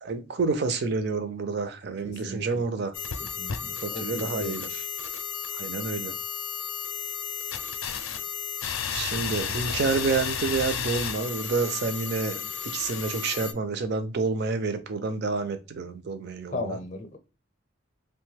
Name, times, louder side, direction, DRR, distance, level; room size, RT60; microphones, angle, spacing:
voice 1, 0.0-2.9 3.8-4.8 5.5-6.1 8.9-16.8, right 4 dB, 55° right, 0.5 m, -29 dB
voice 2, 2.0-2.7 3.4-4.6 16.5-17.2, left 2 dB, 40° left, 0.5 m, -36 dB
sound 1, 2.9-13.5, left 7 dB, 90° left, 0.4 m, -33 dB
2.9 x 2.2 x 3.2 m
head